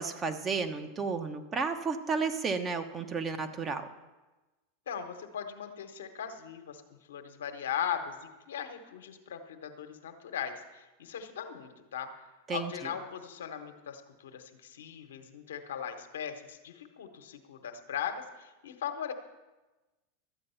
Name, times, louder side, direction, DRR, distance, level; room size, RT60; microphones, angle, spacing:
voice 1, 0.0-3.9 12.5-12.7, right 5 dB, 30° right, 8 dB, 1.1 m, -32 dB
voice 2, 4.9-12.1 12.5-19.1, left 8 dB, 80° left, 6 dB, 1.2 m, -39 dB
13.0 x 8.7 x 5.7 m, 1.1 s
hypercardioid pair, 100°, 0 cm